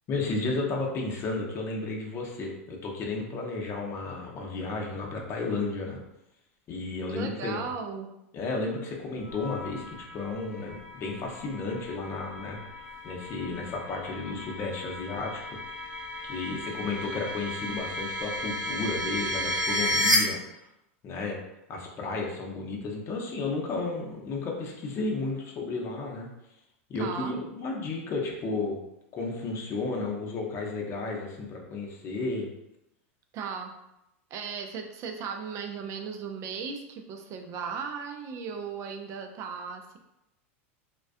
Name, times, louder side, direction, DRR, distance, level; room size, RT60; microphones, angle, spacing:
voice 1, 0.1-6.0 6.7-7.7 8.3-15.4 16.2-20.6 21.0-21.4 21.7-26.3 26.9-28.8 29.1-32.5, left 3 dB, 35° left, 0 dB, 0.6 m, -33 dB
voice 2, 7.2-8.1 26.9-27.4 33.3-33.7 34.3-40.0, right 6 dB, 45° right, 4 dB, 0.4 m, -36 dB
sound 1, 9.2-20.2, equal, 5° right, 1.1 m, -33 dB
2.3 x 2.2 x 2.5 m, 0.86 s
hypercardioid pair, 105°, 7 cm